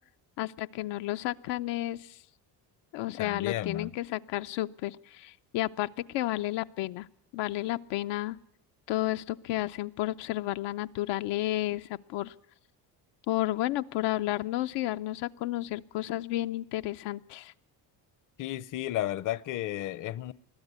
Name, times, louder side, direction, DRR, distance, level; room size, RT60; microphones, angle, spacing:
voice 1, 0.4-2.2 2.9-7.1 7.3-8.4 8.9-12.3 13.3-17.5, left 16 dB, 85° left, 0.7 m, -32 dB
voice 2, 3.2-3.9 18.4-20.3, left 14 dB, 50° left, 0.7 m, -33 dB
21.0 x 13.5 x 9.5 m
cardioid pair, 130°, 41 cm